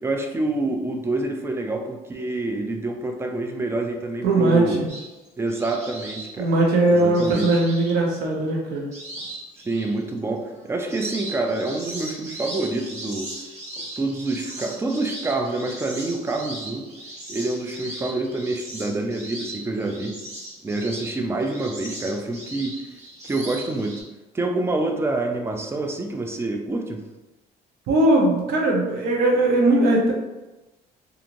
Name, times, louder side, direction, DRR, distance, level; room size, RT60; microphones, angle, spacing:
voice 1, 0.0-4.8 5.4-6.5 6.9-7.5 9.6-13.3 13.8-16.9 17.3-20.1 20.6-22.8 23.2-24.0 24.3-27.0, right 2 dB, 15° right, 3 dB, 0.4 m, -27 dB
voice 2, 4.2-4.9 6.4-8.8 27.9-30.1, right 2 dB, 75° right, -1 dB, 0.8 m, -19 dB
sound 1, 4.9-8.3 8.9-10.0 10.4-24.0, right 1 dB, 45° right, 1.2 m, -38 dB
2.9 x 2.6 x 2.5 m, 1.1 s
cardioid pair, 110°, 17 cm